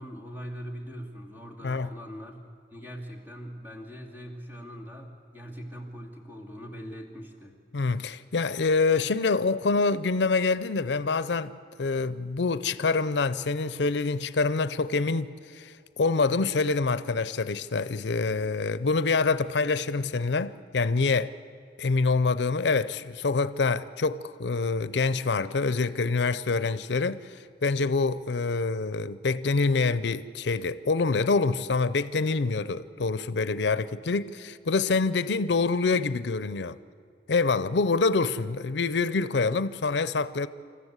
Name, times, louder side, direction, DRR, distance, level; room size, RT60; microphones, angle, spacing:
voice 1, 0.0-2.4 2.7-7.6, equal, 10° right, 2.4 m, -41 dB
voice 2, 7.7-21.3 21.8-36.8 37.3-40.5, left 4 dB, 80° left, 0.6 m, -26 dB
27.5 x 14.5 x 8.1 m
head